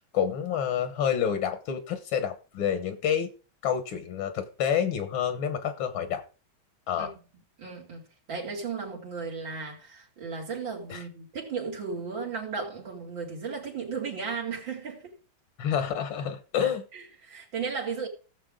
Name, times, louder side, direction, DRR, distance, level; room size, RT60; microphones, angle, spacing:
voice 1, 0.1-3.3 3.6-6.2 6.9-7.1 10.9-11.0 15.6-16.8, left 8 dB, 75° left, 1.9 m, -28 dB
voice 2, 7.6-8.0 8.3-15.2 16.9-18.1, right 5 dB, 70° right, 3.2 m, -35 dB
17.0 x 7.3 x 3.7 m
omnidirectional pair, 2.2 m